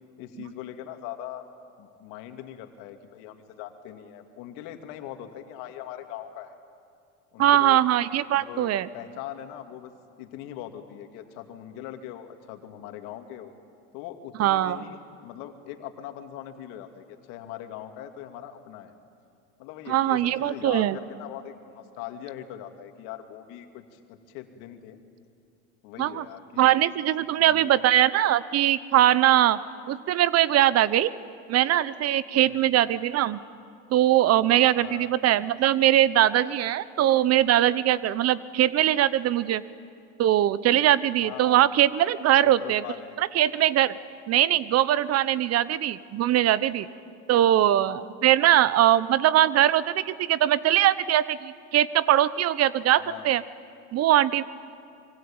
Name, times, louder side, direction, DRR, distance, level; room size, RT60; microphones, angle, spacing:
voice 1, 0.2-1.4 1.8-6.5 7.3-7.8 8.3-9.9 10.2-13.5 13.9-18.9 19.6-25.0 25.8-26.7 27.4-28.0 32.4-32.7 34.8-35.1 41.2-41.6 42.4-43.2 47.5-47.6 48.4-48.7 53.0-53.3, left 11 dB, 65° left, 6 dB, 2.5 m, -41 dB
voice 2, 7.4-8.9 14.4-14.8 19.9-21.0 26.0-26.2 26.6-29.6 29.9-31.1 31.5-33.4 33.9-39.6 40.2-42.8 43.2-43.9 44.3-46.9 47.3-53.4 53.9-54.4, right 12 dB, 45° right, 18 dB, 0.9 m, -21 dB
26.0 x 22.5 x 8.9 m, 2.4 s
hypercardioid pair, 90°, 35 cm